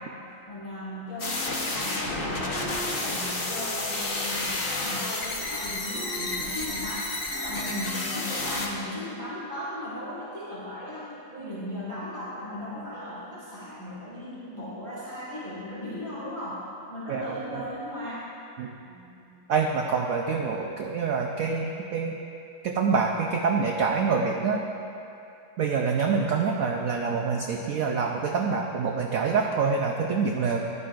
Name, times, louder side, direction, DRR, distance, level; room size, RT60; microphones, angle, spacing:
voice 1, 0.0-16.6 16.9-18.3 18.8-19.4, left 1 dB, 20° left, -9 dB, 2.0 m, -37 dB
sound 1, 1.2-8.7, left 2 dB, 35° left, 1.0 m, -31 dB
Wind instrument woodwind instrument, 1.2-8.9, right 1 dB, 10° right, 0.5 m, -43 dB
voice 2, 17.1-17.6 18.6-18.7 19.5-22.2 22.6-24.6 25.6-30.6, right 5 dB, 65° right, 1 dB, 0.8 m, -26 dB
15.0 x 11.0 x 2.5 m, 2.6 s
omnidirectional pair, 2.0 m